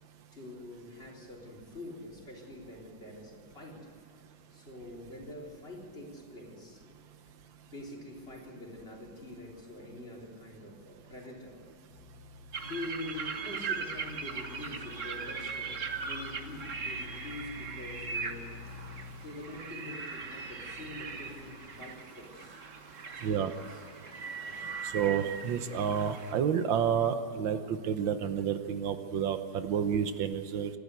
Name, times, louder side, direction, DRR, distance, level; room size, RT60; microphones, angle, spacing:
voice 1, 0.3-3.9 4.5-7.1 7.7-11.6 12.6-18.5 19.2-22.6 23.0-23.8 24.4-24.9, left 2 dB, 30° left, 0 dB, 3.8 m, -45 dB
sound 1, 11.9-21.8, left 5 dB, 85° left, 2.6 m, -50 dB
sound 2, 12.5-26.3, right 5 dB, 45° right, 1.6 m, -40 dB
voice 2, 24.9-30.7, right 8 dB, 80° right, 10 dB, 1.7 m, -30 dB
28.0 x 12.0 x 8.2 m, 2.7 s
omnidirectional pair, 2.1 m